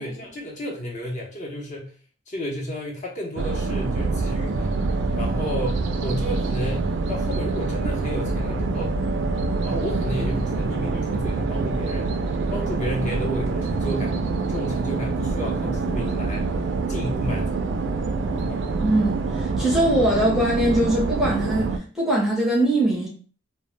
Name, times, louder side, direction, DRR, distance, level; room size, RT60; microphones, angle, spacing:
voice 1, 0.0-1.9 2.3-4.7 5.2-9.0 9.6-12.1 12.5-14.2 14.5-16.4 16.9-17.6 18.4-18.6, equal, 40° left, 0.6 m, -31 dB
sound 1, 3.4-21.8, right 3 dB, 65° right, 0.3 m, -26 dB
voice 2, 18.8-23.1, right 1 dB, 5° right, 0.6 m, -22 dB
2.1 x 2.0 x 3.1 m
head